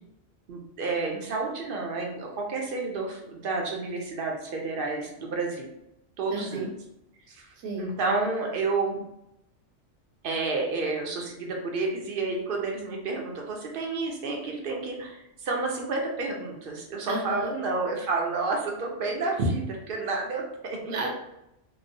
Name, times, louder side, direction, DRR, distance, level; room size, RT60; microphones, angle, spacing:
voice 1, 0.5-5.7 6.2-6.7 7.3-7.5 7.8-9.0 10.2-20.8, right 3 dB, 60° right, 0 dB, 0.6 m, -30 dB
voice 2, 6.3-6.7 7.6-7.9 17.1-17.5 20.9-21.1, right 2 dB, 80° right, 0 dB, 1.0 m, -32 dB
2.9 x 2.0 x 2.5 m, 0.85 s
omnidirectional pair, 1.3 m